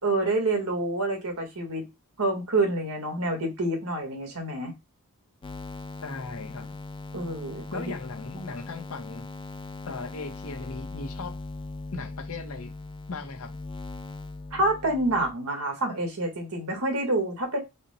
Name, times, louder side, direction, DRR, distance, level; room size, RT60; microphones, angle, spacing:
voice 1, 0.0-1.8 2.2-4.7 7.1-7.9 14.5-17.6, right 2 dB, 80° right, 3 dB, 1.4 m, -27 dB
sound 1, 5.4-15.3, left 3 dB, 25° left, 0.3 m, -40 dB
voice 2, 6.0-6.7 7.7-9.3 9.9-11.4 11.9-12.7 13.1-13.5, left 3 dB, 75° left, 6 dB, 0.8 m, -37 dB
4.2 x 2.1 x 4.0 m, 0.22 s
head